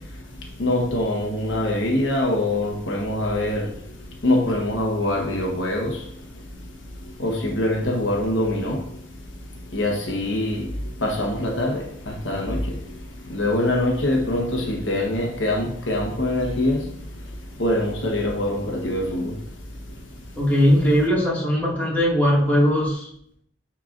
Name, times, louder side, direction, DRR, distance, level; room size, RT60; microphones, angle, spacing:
voice 1, 0.6-3.7 4.2-6.0 7.2-8.8 9.7-10.7 11.0-12.8 13.3-16.8 17.6-19.3, left 1 dB, 75° left, 1.3 m, -24 dB
voice 2, 20.4-23.1, equal, 10° left, 2.1 m, -19 dB
10.5 x 4.5 x 2.6 m
head